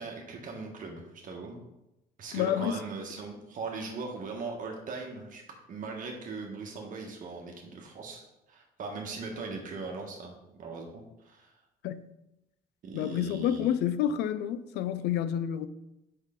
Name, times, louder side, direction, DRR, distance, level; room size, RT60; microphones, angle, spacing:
voice 1, 0.0-1.6 2.2-5.4 5.7-11.6 12.8-13.7, right 4 dB, 50° right, 1.3 m, -39 dB
voice 2, 2.3-2.8 11.8-12.1 12.9-15.7, left 10 dB, 85° left, 0.5 m, -29 dB
6.4 x 5.5 x 3.7 m
cardioid pair, 110°, 17 cm